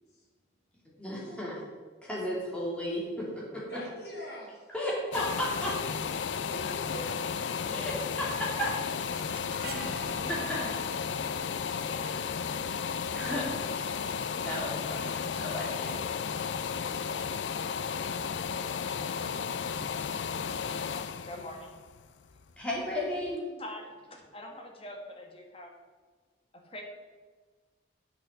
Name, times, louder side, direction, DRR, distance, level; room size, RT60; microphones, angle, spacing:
voice 1, 1.0-1.6 2.0-3.0 4.7-5.7 7.7-8.7 9.6-10.7 11.9-12.4 13.1-14.0 14.4-15.9 22.6-23.6, left 1 dB, 5° left, -5 dB, 2.7 m, -34 dB
voice 2, 3.7-4.7 6.0-7.2, equal, 60° left, -4 dB, 3.6 m, -43 dB
sound 1, 5.1-22.8 23.3-23.4, left 6 dB, 85° left, 0.5 m, -34 dB
sound 2, 8.2-14.1, right 3 dB, 55° right, 1.1 m, -47 dB
voice 3, 21.2-21.7 23.6-25.7 26.5-26.8, left 1 dB, 30° left, 1 dB, 1.5 m, -44 dB
9.1 x 6.3 x 6.4 m, 1.4 s
head